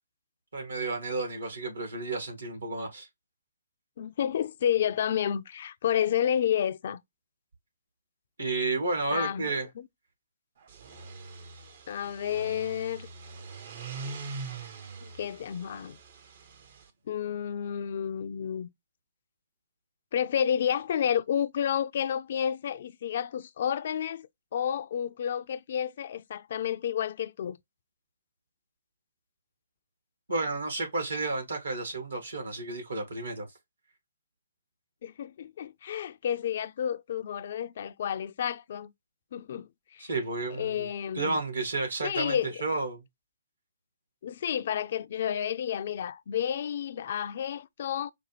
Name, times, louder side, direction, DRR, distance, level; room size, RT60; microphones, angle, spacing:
voice 1, 0.5-3.1 8.4-9.7 30.3-33.5 40.0-40.9 41.2-43.0, right 3 dB, 75° right, 1.7 m, -31 dB
voice 2, 4.0-7.0 9.1-9.9 11.9-13.1 15.2-16.0 17.1-18.7 20.1-24.3 24.5-27.6 35.0-38.9 39.3-40.1 40.5-41.4 42.0-42.6 44.2-48.1, left 9 dB, 50° left, 0.4 m, -30 dB
sound 1, 10.6-16.9, right 4 dB, 50° right, 0.7 m, -43 dB
5.0 x 2.2 x 3.1 m
figure-of-eight pair, 130°, 0 cm